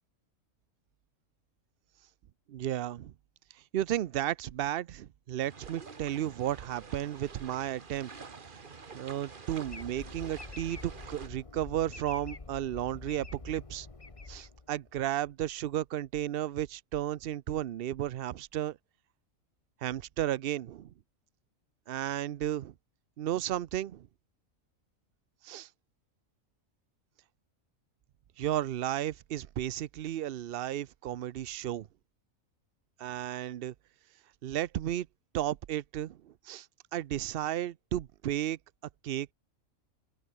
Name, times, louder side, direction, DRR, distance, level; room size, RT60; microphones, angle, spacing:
voice 1, 2.5-3.1 3.7-8.1 8.5-8.6 8.9-13.9 14.3-18.8 19.8-20.9 21.9-22.7 23.2-24.1 25.4-25.7 28.4-31.9 33.0-33.7 34.4-35.1 35.3-36.7 36.9-38.6 39.0-39.3, right 12 dB, 55° right, 0.7 m, -33 dB
sound 1, 5.4-11.3, right 5 dB, 40° right, 1.5 m, -48 dB
sound 2, 9.6-15.0, left 3 dB, 25° left, 1.5 m, -46 dB
open air
omnidirectional pair, 1.4 m